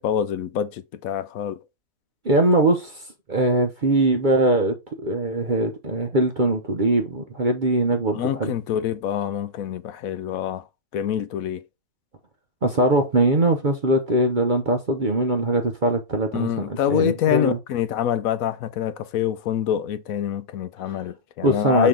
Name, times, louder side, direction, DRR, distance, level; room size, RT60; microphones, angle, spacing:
voice 1, 0.0-1.6 8.1-10.6 10.9-11.6 16.3-21.9, left 10 dB, 75° left, 1.0 m, -26 dB
voice 2, 2.2-3.0 3.3-4.7 5.0-8.5 12.6-17.6 21.4-21.9, right 2 dB, 40° right, 0.8 m, -21 dB
6.5 x 4.2 x 3.7 m
omnidirectional pair, 1.5 m